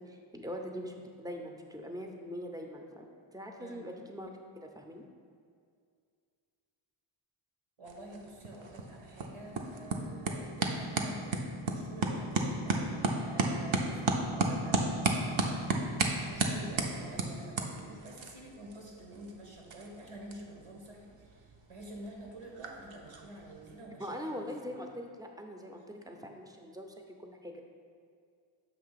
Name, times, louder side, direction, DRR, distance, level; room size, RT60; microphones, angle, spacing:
voice 1, 0.0-3.0 3.3-4.3 4.6-5.0 24.0-26.9 27.2-27.6, equal, 10° right, 3 dB, 0.6 m, -42 dB
voice 2, 7.8-24.7, right 1 dB, 90° right, -2 dB, 1.3 m, -48 dB
sound 1, 7.9-23.7, right 3 dB, 65° right, 0.7 m, -35 dB
6.7 x 2.9 x 5.7 m, 2.2 s
cardioid pair, 55°, 50 cm